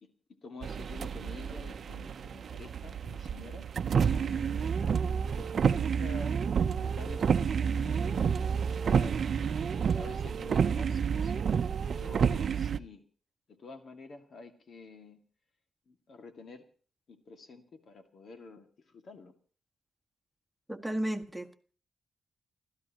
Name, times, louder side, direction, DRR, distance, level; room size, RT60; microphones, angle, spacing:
voice 1, 0.0-3.7 4.1-4.8 5.3-6.3 6.6-9.2 9.6-11.5 11.9-13.0 13.5-15.2 15.9-16.6 17.1-19.3, left 3 dB, 65° left, 5 dB, 2.1 m, -49 dB
sound 1, 0.6-12.8, right 6 dB, 65° right, 0.7 m, -29 dB
voice 2, 20.7-21.5, right 1 dB, 5° right, 6 dB, 1.6 m, -33 dB
29.5 x 13.5 x 3.0 m, 0.41 s
cardioid pair, 105°, 0 cm